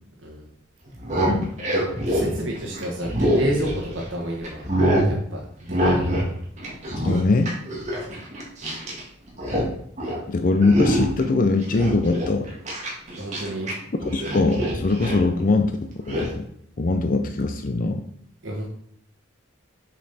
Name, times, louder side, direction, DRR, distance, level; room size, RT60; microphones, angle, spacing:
sound 1, 0.9-4.1 4.4-5.1 5.7-6.3 6.6-9.0 9.3-9.7 10.0-10.2 10.6-11.2 11.6-13.7 14.0-15.2 16.1-16.3, equal, 35° right, 2.0 m, -25 dB
voice 1, 1.2-1.5 7.0-7.5 10.3-12.5 14.1-15.7 16.1-16.5 16.8-18.0, left 3 dB, 45° left, 7 dB, 0.5 m, -21 dB
voice 2, 2.1-4.6 5.0-5.4 5.7-6.2 13.2-13.7 18.4-18.7, right 1 dB, 85° right, -2 dB, 1.4 m, -29 dB
7.2 x 5.4 x 4.2 m, 0.66 s
head